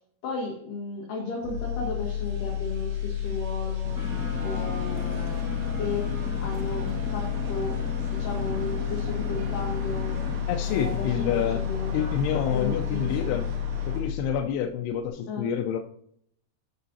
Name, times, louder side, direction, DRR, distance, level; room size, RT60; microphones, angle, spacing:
voice 1, 0.2-4.0 4.4-5.3 5.7-10.4 10.7-12.2 12.5-13.4 15.3-15.5, left 3 dB, 60° left, -4 dB, 3.2 m, -35 dB
sound 1, 1.4-14.6 14.9-15.1, left 10 dB, 60° right, 2.9 m, -31 dB
sound 2, 3.8-14.0, right 2 dB, 90° right, 1.2 m, -39 dB
sound 3, 3.9-10.4, left 2 dB, 5° right, 2.6 m, -37 dB
voice 2, 10.5-11.6 11.9-13.5 13.9-15.8, left 8 dB, 85° left, 3 dB, 2.7 m, -28 dB
15.0 x 5.7 x 2.8 m, 0.65 s
omnidirectional pair, 4.7 m